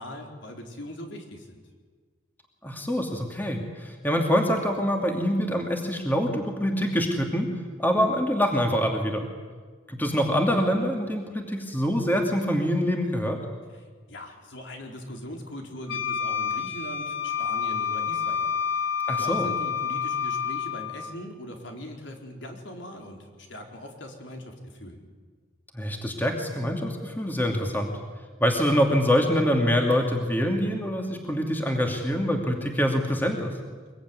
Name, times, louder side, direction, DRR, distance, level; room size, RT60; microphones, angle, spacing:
voice 1, 0.0-1.6 13.7-18.9 19.2-25.0, left 1 dB, 65° left, 2 dB, 4.4 m, -41 dB
voice 2, 2.6-7.5 7.8-9.3 9.9-13.4 19.1-19.5 25.7-27.9 28.4-33.5, equal, 10° left, 2 dB, 2.5 m, -25 dB
Wind instrument woodwind instrument, 15.9-21.0, left 7 dB, 80° left, 3.4 m, -28 dB
24.0 x 22.5 x 9.7 m, 1.5 s
head